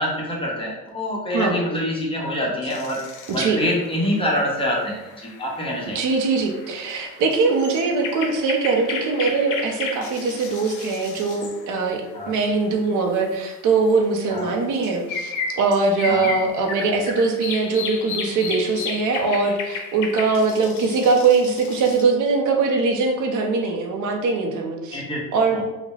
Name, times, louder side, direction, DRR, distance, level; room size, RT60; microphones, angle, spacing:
voice 1, 0.0-3.0 3.3-6.0 12.1-12.3 14.3-14.5 16.1-16.3 24.9-25.2 25.5-25.6, left 1 dB, 20° left, -3 dB, 1.0 m, -26 dB
sound 1, 2.7-12.4 12.8-12.9 13.2-22.0, left 5 dB, 80° left, 0.6 m, -34 dB
voice 2, 3.3-3.6 5.9-25.0 25.3-25.6, right 4 dB, 80° right, 2 dB, 0.7 m, -22 dB
3.8 x 2.1 x 3.2 m, 1.0 s
cardioid pair, 90°, 30 cm